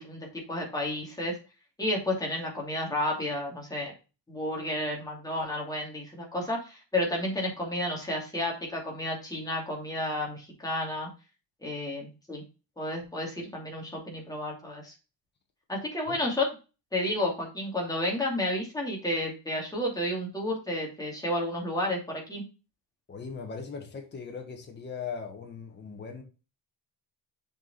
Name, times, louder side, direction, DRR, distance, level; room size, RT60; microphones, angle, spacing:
voice 1, 0.0-1.4 1.8-3.9 4.3-11.1 11.6-12.4 12.8-14.9 15.7-16.5 16.9-22.4, left 1 dB, 10° left, -2 dB, 2.7 m, -31 dB
voice 2, 23.1-26.2, left 5 dB, 25° left, 2 dB, 1.6 m, -39 dB
7.3 x 5.1 x 4.1 m, 0.31 s
cardioid pair, 170°, 41 cm